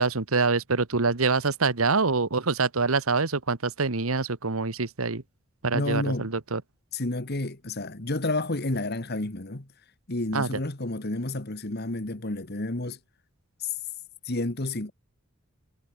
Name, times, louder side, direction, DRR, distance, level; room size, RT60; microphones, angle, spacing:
voice 1, 0.0-5.2 5.6-6.6 10.3-10.5, right 4 dB, 85° right, 1.4 m, -25 dB
voice 2, 5.7-6.3 6.9-9.7 10.1-13.0 13.6-13.7 14.3-14.9, left 2 dB, 50° left, 1.8 m, -30 dB
head